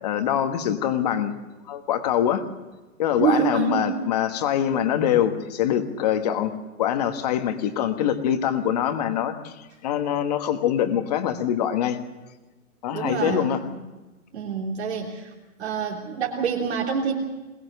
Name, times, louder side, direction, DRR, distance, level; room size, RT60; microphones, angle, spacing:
voice 1, 0.0-1.3 1.7-2.4 3.0-6.5 6.8-12.0 12.8-13.6, left 10 dB, 25° left, 8 dB, 1.4 m, -24 dB
voice 2, 3.2-3.9 12.9-13.8 14.3-15.3 15.6-17.1, right 6 dB, 45° right, -2 dB, 3.3 m, -26 dB
21.5 x 20.0 x 6.8 m, 1.1 s
hypercardioid pair, 165°, 44 cm